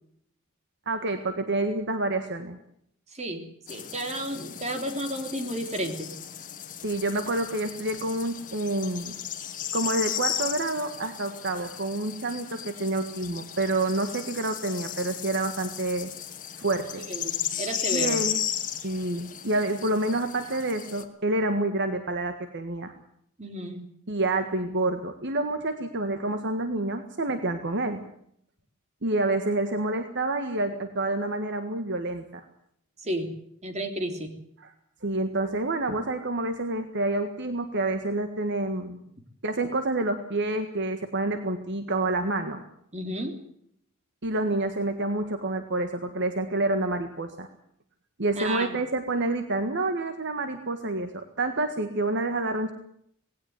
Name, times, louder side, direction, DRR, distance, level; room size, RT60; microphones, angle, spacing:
voice 1, 0.8-2.6 6.8-9.1 9.7-16.1 16.6-17.0 17.9-18.4 18.8-22.9 24.1-28.0 29.0-32.4 34.6-34.7 35.0-39.0 39.4-42.6 44.2-47.5 48.2-52.7, right 2 dB, 55° right, 8 dB, 1.7 m, -28 dB
voice 2, 3.1-6.1 17.1-18.2 23.4-23.8 33.0-33.3 33.6-34.3 42.9-43.4 48.3-48.8, right 1 dB, 30° right, 6 dB, 3.3 m, -32 dB
sound 1, 3.7-21.0, left 9 dB, 40° left, 2.0 m, -35 dB
19.0 x 17.0 x 9.4 m, 0.70 s
head